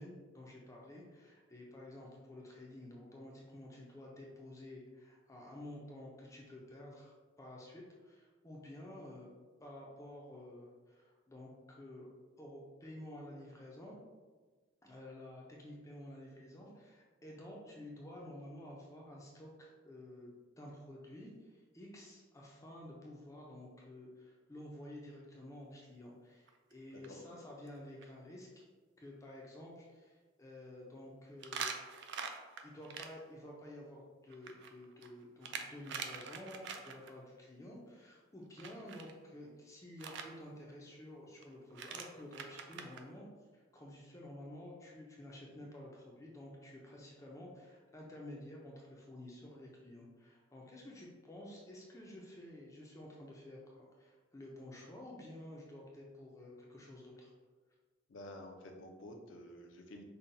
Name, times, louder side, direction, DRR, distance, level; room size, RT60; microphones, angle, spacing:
voice 1, 0.0-9.3 9.6-12.1 12.4-14.0 14.8-28.6 29.0-32.2 32.6-43.2 43.5-57.3, left 1 dB, 15° left, -3 dB, 0.4 m, -51 dB
sound 1, 26.5-26.7 27.0-27.1 27.7-27.8 28.0-28.1 31.4-33.1 34.3-37.1 38.6-39.1 40.0-40.3 41.4-41.5 41.7-43.0, right 6 dB, 55° right, 0.3 m, -44 dB
voice 2, 58.1-60.0, left 1 dB, 65° left, 3 dB, 0.5 m, -50 dB
5.4 x 2.1 x 2.6 m, 1.4 s
head